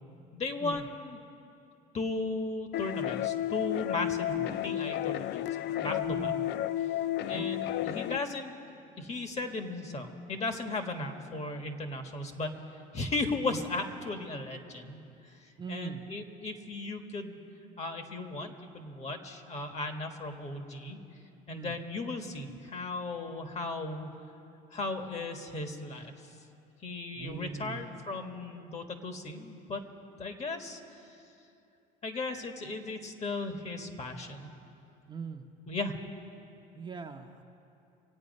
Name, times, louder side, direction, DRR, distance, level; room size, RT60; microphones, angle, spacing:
voice 1, 0.3-1.2 1.9-4.3 4.6-6.3 7.3-8.5 9.0-12.6 12.9-17.4 17.8-21.0 21.5-24.1 24.7-26.1 26.8-29.8 30.2-30.8 32.0-34.5 35.6-36.0, left 3 dB, 35° left, 6 dB, 1.5 m, -36 dB
sound 1, 2.7-8.2, left 13 dB, 55° left, 0.4 m, -32 dB
voice 2, 6.0-6.5 7.3-7.7 13.5-13.6 15.6-16.0 21.5-21.8 27.1-27.9 35.1-35.5 36.7-37.4, right 6 dB, 25° right, 2 dB, 0.9 m, -41 dB
25.0 x 8.6 x 5.4 m, 2.7 s
supercardioid pair, 95°, 21 cm